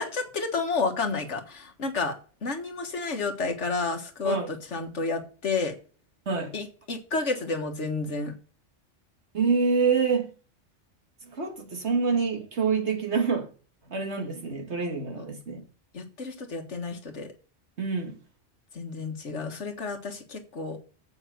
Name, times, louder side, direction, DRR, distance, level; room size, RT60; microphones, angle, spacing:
voice 1, 0.0-2.2 2.4-5.8 6.5-8.3 15.2-15.3 15.9-17.3 18.7-20.8, left 4 dB, 70° left, 1.8 m, -31 dB
voice 2, 9.3-10.3 11.2-13.5 13.9-15.6 17.8-18.2, right 5 dB, 65° right, 2.1 m, -26 dB
8.0 x 7.1 x 6.6 m
omnidirectional pair, 1.2 m